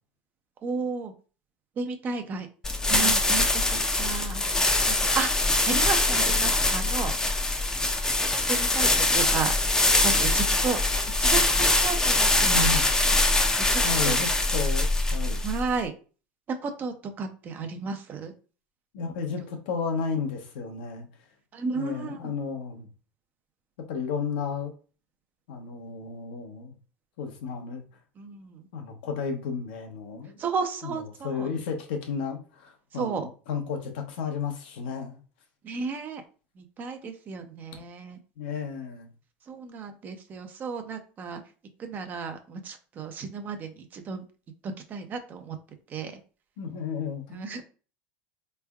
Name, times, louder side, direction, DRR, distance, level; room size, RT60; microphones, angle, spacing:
voice 1, 0.6-1.1 1.8-2.5 2.9-4.4 4.8-7.2 8.5-9.5 10.0-10.8 11.2-12.7 13.6-14.2 15.4-15.9 16.5-18.3 19.4-19.5 21.5-22.3 28.2-28.7 30.4-31.5 32.9-33.3 35.6-36.2 36.6-38.2 39.4-41.4 41.8-44.2 44.6-45.6 45.9-46.2 47.3-47.6, right 5 dB, 35° right, 6 dB, 0.6 m, -33 dB
sound 1, 2.6-15.8, left 2 dB, 10° left, 0.6 m, -23 dB
voice 2, 12.4-12.9 13.8-15.4 18.9-21.1 21.7-22.9 23.8-24.7 25.5-26.7 27.2-27.8 28.7-30.4 30.8-31.0 31.2-35.2 38.4-39.1 46.6-47.6, left 5 dB, 80° left, 3 dB, 0.8 m, -33 dB
3.4 x 3.2 x 2.3 m, 0.37 s
supercardioid pair, 105°, 5 cm